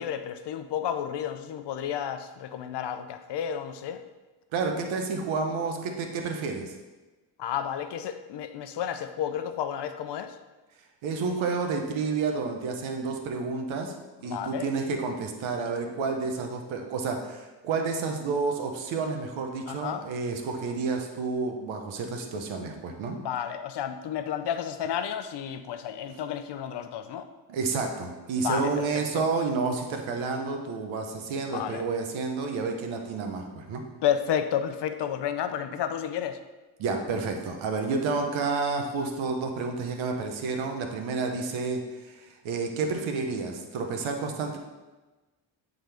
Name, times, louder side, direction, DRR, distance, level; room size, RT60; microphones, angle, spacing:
voice 1, 0.0-4.0 7.4-10.4 14.2-14.7 19.7-20.1 23.2-27.3 28.4-29.3 31.5-31.8 34.0-36.4, left 9 dB, 65° left, 9 dB, 0.6 m, -31 dB
voice 2, 4.5-6.7 11.0-13.9 14.2-23.2 27.5-33.8 36.8-44.6, right 4 dB, 90° right, 4 dB, 1.0 m, -30 dB
9.0 x 3.9 x 3.4 m, 1.2 s
cardioid pair, 85°, 45 cm